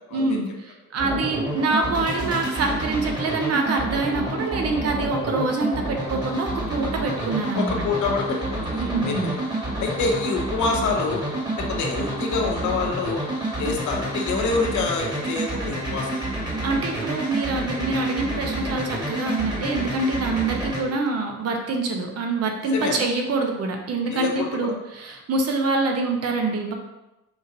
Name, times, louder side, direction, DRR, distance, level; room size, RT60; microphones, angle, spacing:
voice 1, 0.1-7.8 8.8-9.3 16.6-26.7, right 3 dB, 55° right, 3 dB, 0.9 m, -25 dB
sound 1, 1.0-20.8, right 1 dB, 15° right, 1.4 m, -29 dB
voice 2, 7.5-9.2 9.8-11.2 11.6-13.2 13.6-16.3 22.7-23.0 24.1-24.7, left 4 dB, 70° left, 1 dB, 0.9 m, -26 dB
5.0 x 2.6 x 4.0 m, 0.99 s
cardioid pair, 90°, 30 cm